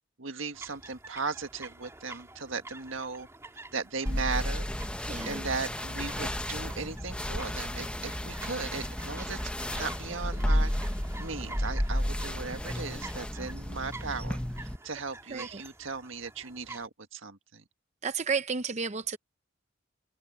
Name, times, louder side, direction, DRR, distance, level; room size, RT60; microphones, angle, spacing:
voice 1, 0.2-3.3 3.7-4.7 5.3-9.4 9.7-10.7 11.2-17.6, right 4 dB, 75° right, 1.7 m, -37 dB
sound 1, 0.5-16.9, right 2 dB, 15° right, 3.0 m, -48 dB
sound 2, 4.1-14.8, equal, 5° left, 0.8 m, -32 dB
voice 2, 5.1-5.4 15.3-15.6 18.0-19.2, right 5 dB, 35° right, 0.7 m, -32 dB
head